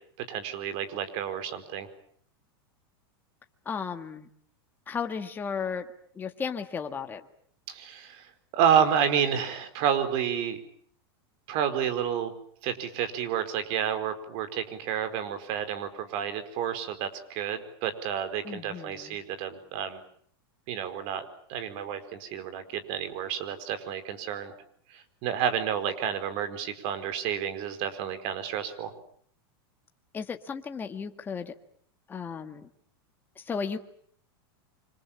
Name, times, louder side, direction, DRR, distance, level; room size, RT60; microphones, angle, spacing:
voice 1, 0.3-1.9 7.7-8.3 8.5-10.6 11.5-12.3 12.6-20.0 20.7-24.5 24.9-28.9, right 8 dB, 50° right, 10 dB, 4.6 m, -30 dB
voice 2, 3.6-4.3 4.9-5.9 6.1-7.2 18.4-19.2 30.1-31.6 32.1-32.7 33.3-33.8, left 6 dB, 15° left, 6 dB, 1.7 m, -34 dB
28.5 x 25.5 x 7.4 m, 0.62 s
supercardioid pair, 150°, 12 cm